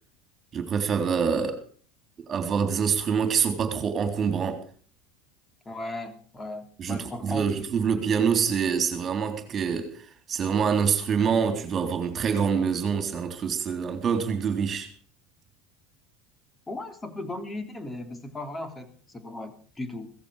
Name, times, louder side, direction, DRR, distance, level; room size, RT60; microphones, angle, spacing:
voice 1, 0.5-1.6 2.3-4.6 6.8-9.9 10.3-14.9, right 6 dB, 35° right, 3.5 m, -25 dB
voice 2, 5.6-7.5 16.7-20.1, left 1 dB, 15° left, 3.3 m, -37 dB
17.0 x 15.0 x 4.9 m
hypercardioid pair, 85°, 0 cm